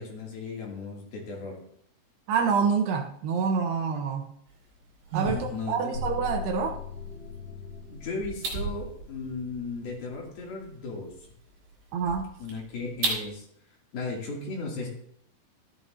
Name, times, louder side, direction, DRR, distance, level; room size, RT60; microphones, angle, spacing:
voice 1, 0.0-1.6 5.3-6.0 7.9-11.1 12.4-13.5 13.9-14.9, left 3 dB, 60° left, -2 dB, 4.3 m, -36 dB
voice 2, 2.3-4.3 5.1-6.8 11.9-12.3, right 6 dB, 80° right, 4 dB, 2.7 m, -27 dB
sound 1, 4.5-13.3, right 4 dB, 55° right, 5.2 m, -38 dB
sound 2, 5.9-10.2, left 5 dB, 75° left, 6.0 m, -40 dB
14.0 x 12.5 x 2.7 m, 0.67 s
omnidirectional pair, 5.1 m